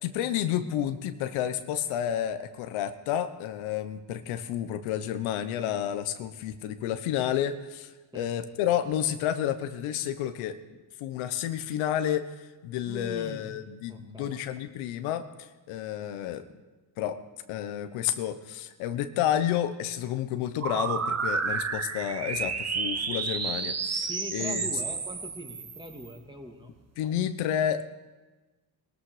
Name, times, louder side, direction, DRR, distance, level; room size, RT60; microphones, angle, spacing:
voice 1, 0.0-10.6 11.0-16.4 17.0-17.2 17.5-24.7 27.0-27.8, left 10 dB, 90° left, 10 dB, 1.1 m, -30 dB
voice 2, 12.8-13.5 13.9-14.3 24.1-26.7, equal, 10° right, 2 dB, 2.6 m, -41 dB
sound 1, 20.6-26.1, right 5 dB, 35° right, 1.4 m, -31 dB
20.0 x 13.0 x 5.0 m, 1.2 s
supercardioid pair, 75°, 47 cm